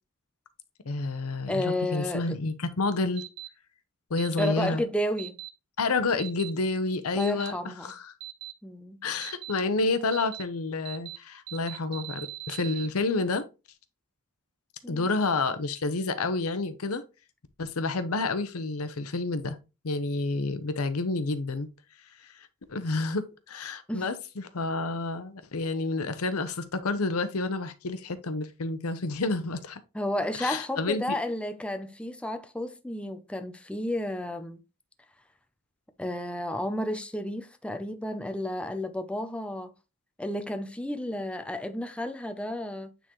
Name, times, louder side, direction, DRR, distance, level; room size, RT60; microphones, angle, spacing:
voice 1, 0.8-3.2 4.1-4.8 5.8-8.1 9.0-13.4 14.9-17.0 17.6-19.6 19.8-21.7 22.2-22.3 22.7-29.8 30.4-31.2, left 3 dB, 85° left, 0.8 m, -29 dB
voice 2, 1.5-2.4 4.4-5.3 7.2-7.9 8.6-9.0 14.8-15.1 23.9-24.1 29.9-34.6 36.0-39.7 40.2-42.9, left 1 dB, 5° left, 0.5 m, -32 dB
sound 1, 3.2-3.5 4.2-4.5 5.2-5.5 6.2-6.5 7.2-7.5 8.2-8.5 9.2-9.5 10.1-10.4 10.8-11.2 11.5-12.9, right 16 dB, 85° right, 0.6 m, -40 dB
9.0 x 3.8 x 3.0 m
head